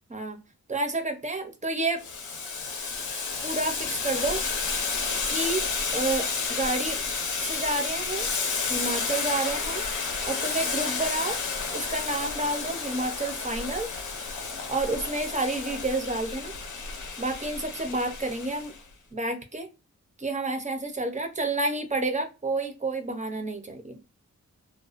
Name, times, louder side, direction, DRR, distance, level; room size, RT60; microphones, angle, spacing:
voice 1, 0.7-2.0 3.4-4.4 5.3-5.6 5.9-7.0 7.4-8.3 8.7-9.8 10.3-11.4 11.7-13.9 14.7-16.5 17.2-18.7 19.1-19.7 20.2-24.0, right 2 dB, 25° right, 5 dB, 0.5 m, -29 dB
Boiling, 2.0-18.8, left 4 dB, 80° left, 0.6 m, -31 dB
2.4 x 2.1 x 2.4 m, 0.29 s
wide cardioid pair, 135°, 30 cm